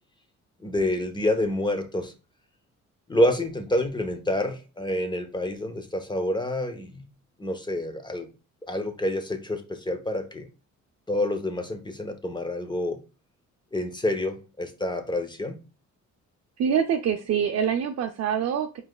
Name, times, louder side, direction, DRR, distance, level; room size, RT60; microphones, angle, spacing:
voice 1, 0.6-2.1 3.1-7.0 7.4-8.3 8.7-10.5 11.1-13.0 13.7-15.6, left 1 dB, 15° left, 0.9 m, -28 dB
voice 2, 16.6-18.8, right 8 dB, 60° right, 0.6 m, -25 dB
4.7 x 4.0 x 2.3 m
cardioid pair, 90°, 30 cm